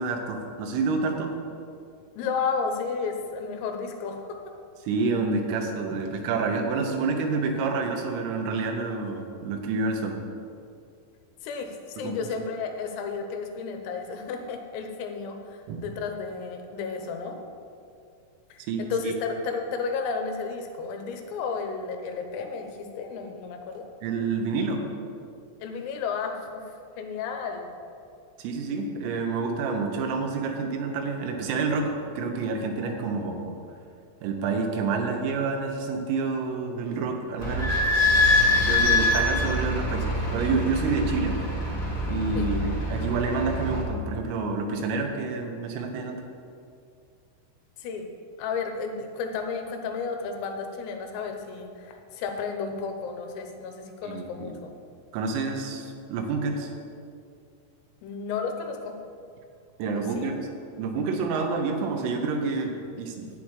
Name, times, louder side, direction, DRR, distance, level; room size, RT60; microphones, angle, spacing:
voice 1, 0.0-1.4 4.8-10.2 12.0-12.2 15.7-15.8 18.7-19.1 24.0-24.8 28.4-33.5 34.2-37.9 38.6-41.4 42.1-42.6 42.9-46.2 54.0-54.5 55.1-56.7 59.8-60.4 60.8-63.3, right 4 dB, 90° right, 3 dB, 3.8 m, -28 dB
voice 2, 2.2-4.4 11.4-17.4 18.5-23.9 25.6-27.7 42.4-42.5 47.8-48.1 48.4-54.7 58.0-59.0 59.9-60.3, left 5 dB, 85° left, 4 dB, 3.7 m, -32 dB
Idling / Squeak, 37.4-43.8, left 2 dB, 35° left, 1.6 m, -24 dB
11.5 x 8.9 x 4.8 m, 2.4 s
omnidirectional pair, 5.9 m